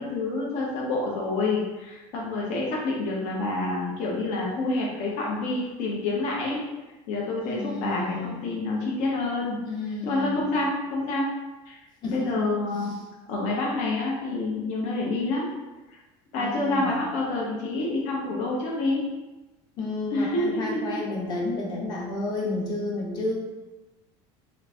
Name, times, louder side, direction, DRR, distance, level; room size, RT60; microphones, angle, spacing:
voice 1, 0.0-6.6 7.1-9.6 10.0-11.3 11.7-11.8 12.1-13.0 13.3-15.5 16.3-19.0 20.1-21.1, left 2 dB, 60° left, -3 dB, 0.8 m, -28 dB
voice 2, 7.4-8.4 9.6-10.4 12.0-12.5 16.4-17.0 19.8-23.3, left 2 dB, 35° left, -2 dB, 0.9 m, -31 dB
3.1 x 2.5 x 3.4 m, 1.1 s
cardioid pair, 145°, 13 cm